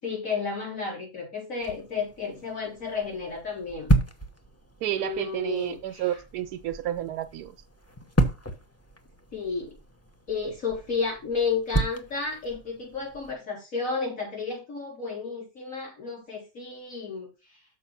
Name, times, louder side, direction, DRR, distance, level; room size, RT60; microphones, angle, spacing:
voice 1, 0.0-3.9 5.0-6.2 9.3-9.7 10.3-17.6, left 5 dB, 60° left, 4.3 m, -32 dB
sound 1, 1.6-13.3, right 1 dB, 15° left, 0.6 m, -32 dB
voice 2, 4.8-7.5, right 12 dB, 85° right, 1.2 m, -31 dB
6.6 x 5.2 x 5.8 m
omnidirectional pair, 1.6 m